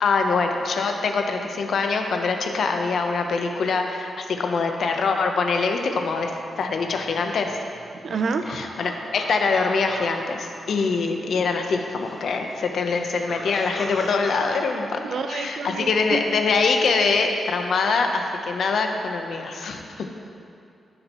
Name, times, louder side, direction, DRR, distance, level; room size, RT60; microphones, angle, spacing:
voice 1, 0.0-6.3 6.6-7.6 8.5-15.0 15.3-20.1, left 4 dB, 60° left, 4 dB, 0.7 m, -24 dB
sound 1, 6.2-6.3 6.6-11.2 11.5-14.4, left 1 dB, 5° left, 1.7 m, -41 dB
voice 2, 8.0-8.6 15.0-16.2, right 4 dB, 55° right, 8 dB, 0.5 m, -28 dB
14.0 x 6.6 x 3.0 m, 2.5 s
wide cardioid pair, 165°, 0 cm